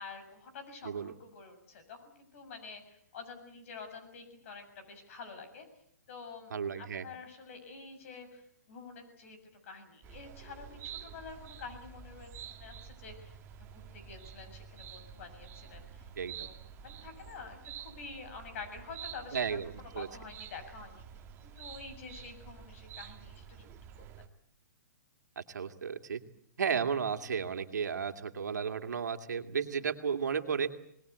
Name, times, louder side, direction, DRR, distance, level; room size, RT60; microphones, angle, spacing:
voice 1, 0.0-5.7 6.1-9.4 9.7-16.0 16.4-21.0 21.4-23.7 24.0-24.1 29.7-29.9, left 4 dB, 50° left, 8 dB, 7.1 m, -48 dB
voice 2, 6.5-7.1 16.2-16.5 19.3-20.1 25.4-26.2 26.6-30.7, right 6 dB, 80° right, 6 dB, 2.3 m, -33 dB
sound 1, 10.0-24.3, right 8 dB, 25° right, 1.7 m, -49 dB
26.5 x 20.0 x 8.2 m, 0.72 s
hypercardioid pair, 150°, 9 cm